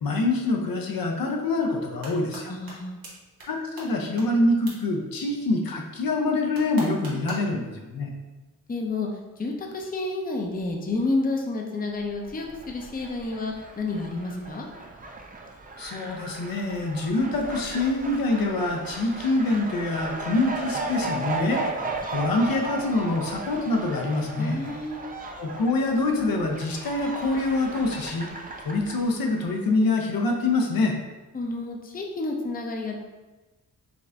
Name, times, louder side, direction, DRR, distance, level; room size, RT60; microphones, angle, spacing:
voice 1, 0.0-2.5 3.5-8.1 15.8-21.6 22.1-24.6 25.4-28.3 28.6-30.9, left 2 dB, 85° left, 1 dB, 0.7 m, -25 dB
sound 1, 1.8-2.4 2.7-2.8 3.0-3.1 3.4-3.5 3.8-3.9 4.2-4.3 4.7-4.8 6.5-7.5, right 2 dB, 90° right, 1.2 m, -38 dB
voice 2, 2.5-3.0 8.7-9.1 9.4-14.7 24.4-25.0 31.3-33.0, left 2 dB, 25° left, 1 dB, 0.5 m, -30 dB
Fowl, 12.1-29.5, right 3 dB, 25° right, 0.4 m, -36 dB
5.1 x 2.5 x 3.3 m, 1.2 s
wide cardioid pair, 125°, 34 cm